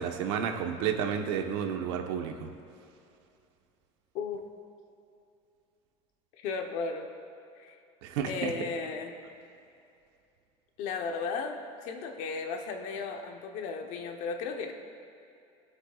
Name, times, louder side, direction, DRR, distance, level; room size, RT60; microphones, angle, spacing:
voice 1, 0.0-2.5 8.0-8.5, right 7 dB, 80° right, 3 dB, 1.2 m, -31 dB
voice 2, 6.4-7.1 7.6-7.8 8.2-9.2 10.8-14.7, left 4 dB, 55° left, 4 dB, 1.0 m, -35 dB
22.0 x 8.1 x 2.5 m, 2.6 s
cardioid pair, 165°, 15 cm